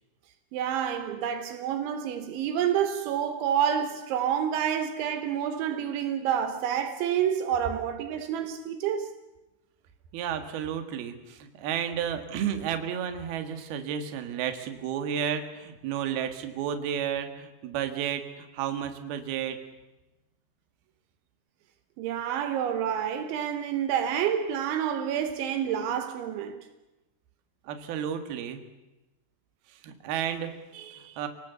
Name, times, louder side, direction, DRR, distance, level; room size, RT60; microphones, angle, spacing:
voice 1, 0.5-9.1 22.0-26.6, right 9 dB, 80° right, 3.5 m, -28 dB
voice 2, 10.1-19.6 27.7-28.6 29.7-31.3, right 9 dB, 60° right, 3.3 m, -32 dB
28.0 x 19.0 x 8.2 m
omnidirectional pair, 5.4 m